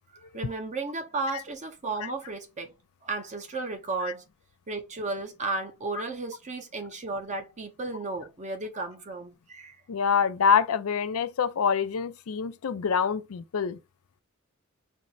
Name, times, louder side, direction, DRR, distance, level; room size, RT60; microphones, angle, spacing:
voice 1, 0.3-2.7 3.0-4.2 4.7-9.8, right 3 dB, 35° right, 0.7 m, -34 dB
voice 2, 9.9-13.8, left 6 dB, 75° left, 0.4 m, -26 dB
4.3 x 2.0 x 4.0 m
head